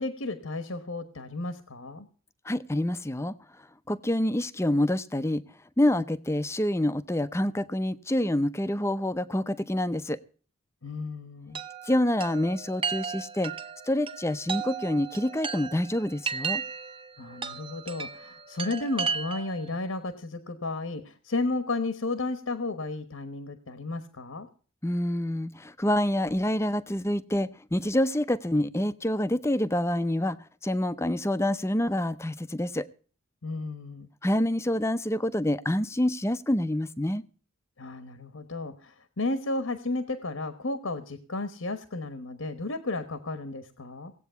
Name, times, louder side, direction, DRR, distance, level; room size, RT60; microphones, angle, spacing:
voice 1, 0.0-2.1 10.8-11.6 17.2-24.5 33.4-34.1 37.8-44.1, left 2 dB, 75° left, 10 dB, 1.2 m, -33 dB
voice 2, 2.4-3.3 3.9-5.4 5.8-10.2 11.8-13.5 13.8-16.6 24.8-32.9 34.2-37.2, left 1 dB, 10° left, 13 dB, 0.6 m, -27 dB
Chime, 11.5-19.7, right 6 dB, 25° right, 0.8 m, -35 dB
18.0 x 8.4 x 6.9 m, 0.42 s
head